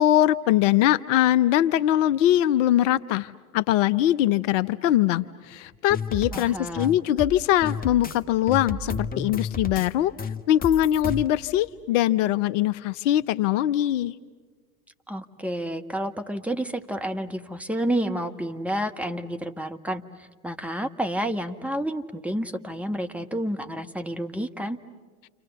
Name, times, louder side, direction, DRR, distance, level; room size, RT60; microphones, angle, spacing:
voice 1, 0.0-10.1 10.5-14.1, left 12 dB, 55° left, 16 dB, 0.7 m, -22 dB
sound 1, 5.9-6.4 6.8-8.2 8.5-9.9 10.2-11.3, left 4 dB, 20° left, 1.2 m, -31 dB
voice 2, 6.3-7.0 15.1-24.8, right 1 dB, 5° right, 5 dB, 1.3 m, -30 dB
30.0 x 27.0 x 7.0 m, 1.4 s
hypercardioid pair, 80°, 45 cm